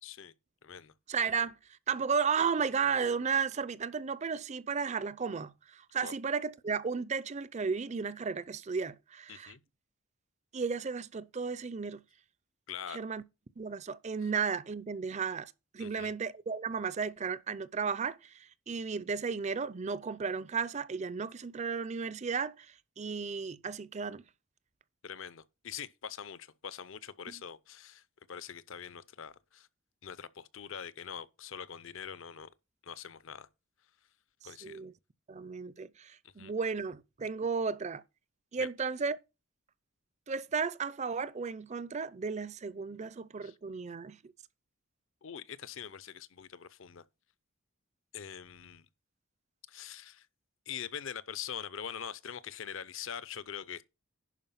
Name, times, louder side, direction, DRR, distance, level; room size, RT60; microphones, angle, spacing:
voice 1, 0.0-0.3 0.6-0.9 6.0-6.1 9.3-9.6 12.7-13.0 15.8-16.1 25.0-28.0 28.3-29.7 30.0-32.5 32.8-33.5 34.4-34.8 36.2-36.5 38.6-38.7 43.4-43.6 45.2-47.0 48.1-48.9 49.7-50.3 50.7-53.8, left 8 dB, 60° left, 0.6 m, -43 dB
voice 2, 1.1-1.6 1.9-9.5 10.5-12.0 12.9-13.2 13.6-24.2 34.6-34.9 35.3-38.0 38.5-39.2 40.3-44.3, right 5 dB, 30° right, 0.4 m, -34 dB
11.0 x 4.7 x 5.7 m
head